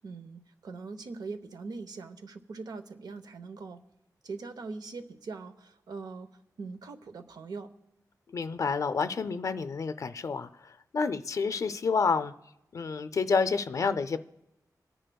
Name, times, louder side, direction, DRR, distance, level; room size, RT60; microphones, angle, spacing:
voice 1, 0.0-3.8 4.2-6.3 6.6-7.7, right 4 dB, 80° right, 9 dB, 0.8 m, -41 dB
voice 2, 8.3-12.3 12.7-14.2, left 5 dB, 50° left, 12 dB, 0.4 m, -29 dB
27.5 x 10.0 x 2.3 m, 0.91 s
wide cardioid pair, 160°, 7 cm